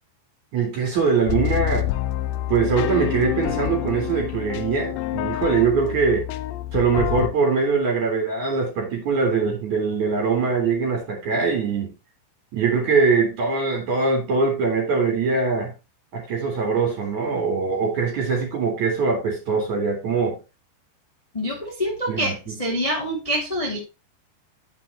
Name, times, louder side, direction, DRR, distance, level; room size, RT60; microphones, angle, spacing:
voice 1, 0.5-1.8 2.5-6.3 6.7-11.9 12.5-15.7 16.1-20.4 22.1-22.4, right 4 dB, 40° right, 1 dB, 4.4 m, -22 dB
sound 1, 1.3-7.3, left 14 dB, 80° left, 2.8 m, -27 dB
voice 2, 21.3-23.8, equal, 15° left, -2 dB, 1.2 m, -26 dB
10.5 x 7.7 x 3.0 m, 0.27 s
omnidirectional pair, 5.4 m